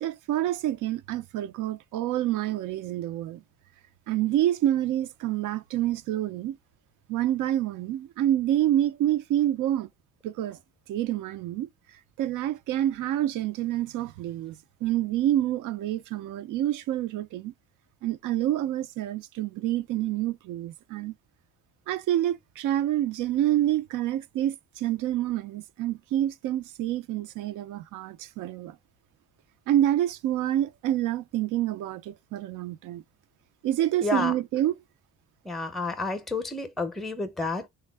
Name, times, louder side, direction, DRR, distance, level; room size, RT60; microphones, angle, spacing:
voice 1, 0.0-3.4 4.1-6.6 7.1-9.9 10.2-10.6 10.9-11.7 12.2-17.5 18.0-21.1 21.9-28.8 29.7-33.0 33.6-34.8, right 12 dB, 85° right, 0.5 m, -27 dB
voice 2, 34.0-34.3 35.4-37.7, left 3 dB, ahead, 0.5 m, -30 dB
3.4 x 2.3 x 3.3 m
cardioid pair, 90°, 30 cm